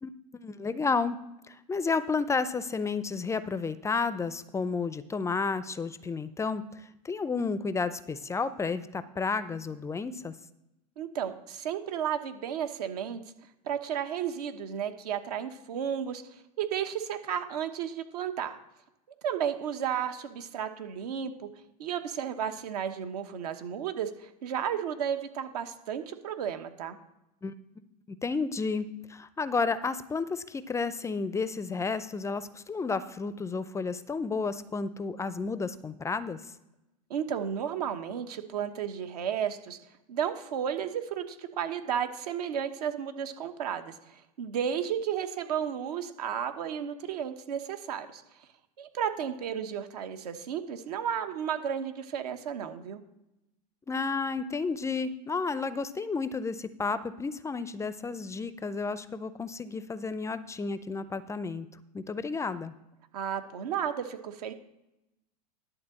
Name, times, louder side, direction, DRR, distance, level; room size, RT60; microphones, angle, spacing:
voice 1, 0.0-1.2 1.5-10.3 27.4-27.5 28.2-36.5 53.9-61.7 61.9-62.7, left 4 dB, 15° left, 14 dB, 0.4 m, -32 dB
voice 2, 11.0-13.2 13.6-16.2 16.6-18.6 19.2-21.5 21.8-27.0 37.1-39.8 40.1-48.2 48.8-53.0 63.1-64.5, right 8 dB, 75° right, 8 dB, 1.1 m, -33 dB
11.0 x 3.9 x 7.5 m, 0.92 s
hypercardioid pair, 100°, 20 cm